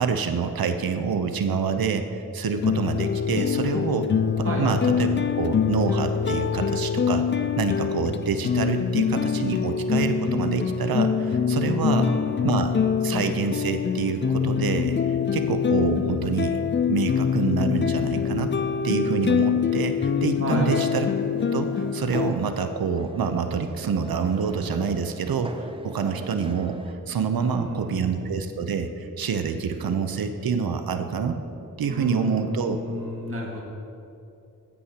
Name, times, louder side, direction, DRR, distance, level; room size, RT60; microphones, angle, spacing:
voice 1, 0.0-4.1 4.4-7.2 7.6-12.1 12.4-12.7 13.0-15.0 15.3-16.6 16.9-18.5 18.8-21.1 21.5-26.7 27.1-31.4 31.8-32.8, right 6 dB, 75° right, 7 dB, 0.7 m, -27 dB
sound 1, 2.5-22.3, left 7 dB, 35° left, 0.4 m, -24 dB
voice 2, 11.9-12.5 20.4-20.8 27.3-28.4 31.9-33.6, equal, 40° right, -2 dB, 1.6 m, -31 dB
sound 2, 21.3-26.9, right 2 dB, 15° right, 0.5 m, -42 dB
15.0 x 8.1 x 2.8 m, 2.8 s
cardioid pair, 50°, 35 cm